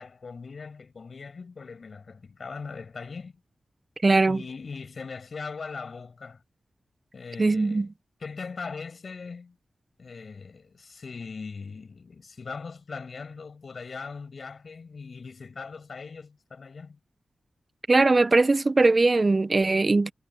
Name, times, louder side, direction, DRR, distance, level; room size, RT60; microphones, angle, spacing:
voice 1, 0.0-3.4 4.3-6.4 7.1-7.9 8.2-9.6 10.0-17.0, left 4 dB, 65° left, 7.9 m, -40 dB
voice 2, 4.0-4.4 7.4-7.9 17.9-20.1, right 3 dB, 45° right, 1.1 m, -20 dB
cardioid pair, 40°, 0 cm